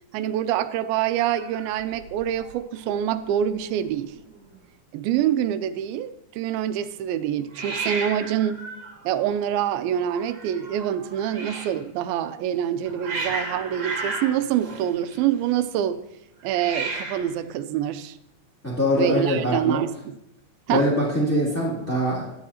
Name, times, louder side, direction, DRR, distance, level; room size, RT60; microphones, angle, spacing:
voice 1, 0.1-4.1 4.9-8.6 9.1-16.0 16.4-18.2 19.0-20.2 20.7-20.8, right 10 dB, 85° right, 12 dB, 2.4 m, -26 dB
Hiss, 1.2-2.6 2.8-3.3 3.5-3.6 3.8-4.5 7.5-11.8 12.6-15.5 16.4-17.4, right 3 dB, 40° right, 1.8 m, -34 dB
voice 2, 18.6-19.8 20.7-22.3, equal, 5° left, -7 dB, 1.7 m, -23 dB
14.0 x 10.0 x 2.8 m, 0.85 s
omnidirectional pair, 4.2 m